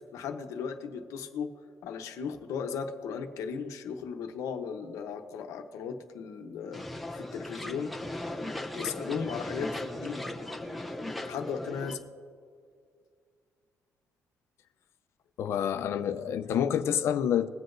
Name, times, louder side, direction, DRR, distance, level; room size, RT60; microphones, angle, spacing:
voice 1, 0.1-1.5 1.8-7.9 8.4-10.2 11.2-12.0, left 6 dB, 75° left, 0.8 m, -36 dB
sound 1, 6.7-11.9, left 1 dB, ahead, 0.6 m, -37 dB
voice 2, 15.4-17.5, left 9 dB, 55° left, 0.5 m, -28 dB
21.5 x 7.9 x 2.6 m
cardioid pair, 175°, 5 cm